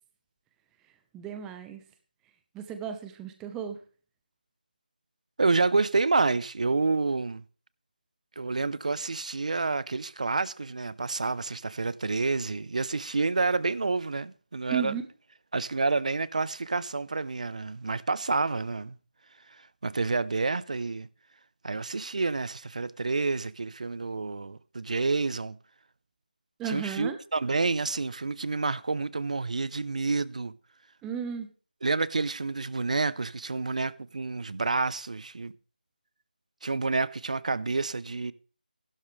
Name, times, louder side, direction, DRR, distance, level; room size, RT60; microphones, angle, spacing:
voice 1, 1.1-1.8 2.5-3.8 14.7-15.0 26.6-27.2 31.0-31.5, right 8 dB, 5° right, 0.8 m, -34 dB
voice 2, 5.4-7.4 8.4-14.9 15.5-19.0 19.5-21.1 21.6-25.6 26.7-30.5 31.8-35.5 36.6-38.3, right 3 dB, 45° right, 0.8 m, -29 dB
15.5 x 12.0 x 3.3 m
figure-of-eight pair, 165°, 5 cm